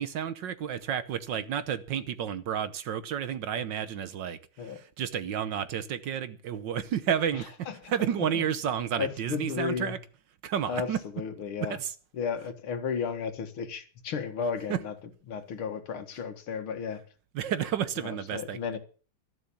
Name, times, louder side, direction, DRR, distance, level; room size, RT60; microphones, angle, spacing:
voice 1, 0.0-7.5 7.9-10.0 10.4-11.0 11.7-11.9 14.7-14.8 17.3-18.6, right 9 dB, 65° right, 1.5 m, -31 dB
voice 2, 7.7-8.4 9.0-10.0 10.7-10.9 11.1-11.8 12.1-14.9 15.3-17.0 18.0-18.8, left 6 dB, 80° left, 2.5 m, -34 dB
12.5 x 11.0 x 7.1 m
omnidirectional pair, 2.3 m